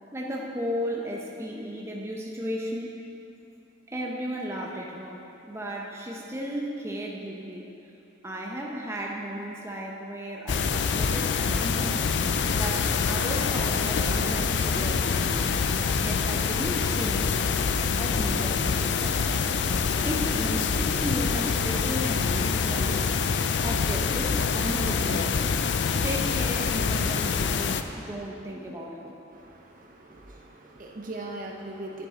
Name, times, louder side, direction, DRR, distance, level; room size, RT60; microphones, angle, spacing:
voice 1, 0.1-3.0 3.9-7.7 8.2-12.0 12.5-15.4 16.0-17.3 17.9-19.2 20.0-23.1 23.6-25.4 25.9-29.1, equal, 15° right, -2 dB, 0.7 m, -34 dB
sound 1, 10.5-27.8, left 5 dB, 70° left, 0.4 m, -26 dB
voice 2, 29.3-32.1, right 2 dB, 45° right, 0 dB, 0.7 m, -40 dB
11.5 x 7.5 x 3.7 m, 2.8 s
head